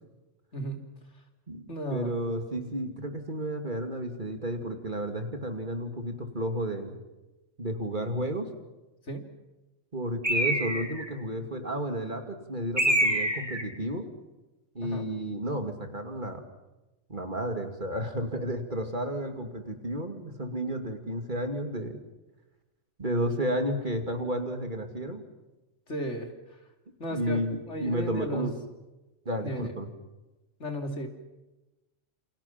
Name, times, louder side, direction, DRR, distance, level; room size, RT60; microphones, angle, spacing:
voice 1, 0.5-0.8 1.7-2.1 9.1-9.3 14.8-15.1 25.9-26.3 27.0-27.4 27.7-28.5 29.4-29.7 30.6-31.1, equal, 65° left, 4 dB, 3.3 m, -34 dB
voice 2, 1.5-7.0 7.6-8.5 9.9-14.0 14.7-16.4 17.1-22.0 23.0-25.2 27.1-28.5 29.2-29.9, right 1 dB, 40° right, 5 dB, 2.7 m, -32 dB
Bird, 10.2-11.1 12.8-13.7, right 1 dB, 20° right, 3.3 m, -26 dB
28.5 x 27.5 x 5.9 m, 1.0 s
omnidirectional pair, 1.3 m